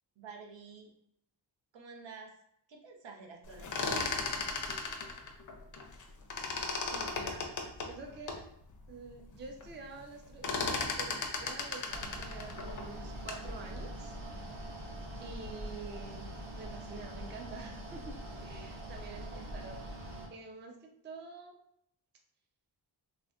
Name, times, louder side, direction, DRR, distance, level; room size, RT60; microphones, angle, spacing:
voice 1, 0.2-0.9 1.7-2.3 2.7-4.1, right 4 dB, 85° right, 1 dB, 0.7 m, -49 dB
sound 1, 3.5-6.0 6.3-8.4 8.9-9.0 9.3-9.7 10.0-13.5, left 4 dB, 45° left, 0.4 m, -36 dB
voice 2, 6.4-7.5 7.7-8.5 8.9-14.4 15.2-21.6, right 3 dB, 25° right, 2 dB, 0.3 m, -48 dB
Mechanical fan, 11.9-20.3, right 1 dB, 65° right, 1.1 m, -43 dB
3.3 x 2.5 x 2.2 m, 0.73 s
wide cardioid pair, 150°, 44 cm